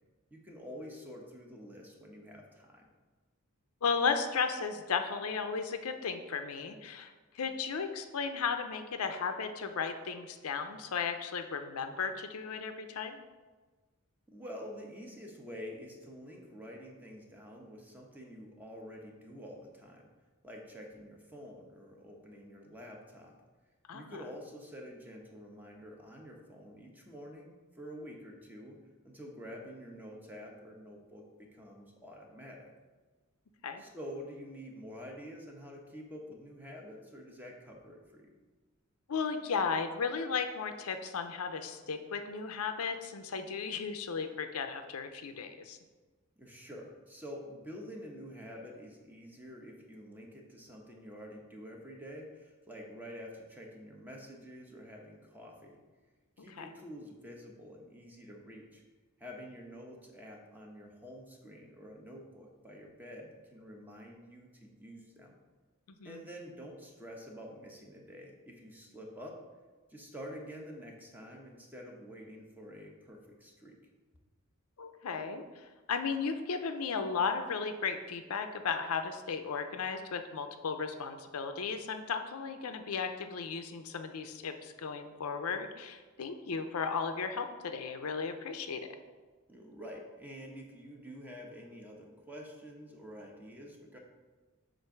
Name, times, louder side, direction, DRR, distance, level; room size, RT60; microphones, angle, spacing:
voice 1, 0.3-2.9 14.3-20.1 20.4-23.3 23.9-28.8 29.0-32.7 33.8-38.3 46.4-55.8 56.4-58.8 59.2-65.4 66.0-69.4 69.9-73.8 89.5-94.0, equal, 10° right, 0 dB, 0.9 m, -48 dB
voice 2, 3.8-13.2 23.9-24.2 33.6-33.8 39.1-45.8 56.6-56.7 66.0-66.2 74.8-75.4 75.9-88.8, left 5 dB, 85° left, 7 dB, 0.5 m, -35 dB
7.6 x 2.6 x 5.8 m, 1.3 s
head